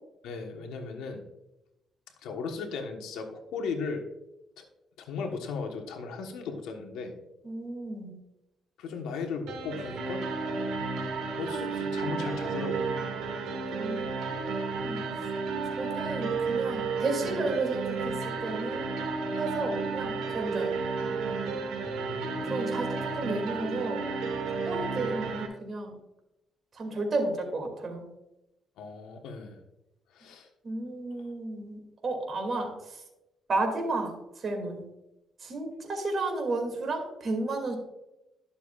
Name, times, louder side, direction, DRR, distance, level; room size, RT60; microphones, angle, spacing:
voice 1, 0.2-1.2 2.2-4.0 4.6-4.7 5.0-7.1 8.8-10.2 11.4-12.9 21.8-22.5 28.8-29.6 30.1-30.5, left 4 dB, 90° left, 4 dB, 1.2 m, -36 dB
voice 2, 7.4-8.2 13.8-15.2 15.8-18.9 19.4-20.8 22.4-24.0 24.6-25.9 26.7-28.0 30.6-33.0 33.5-34.2 34.4-34.8 35.4-37.8, right 2 dB, 45° right, 2 dB, 2.4 m, -32 dB
sound 1, 9.5-25.5, right 4 dB, 90° right, 1.4 m, -32 dB
11.5 x 6.9 x 2.4 m, 0.91 s
cardioid pair, 90°, 0 cm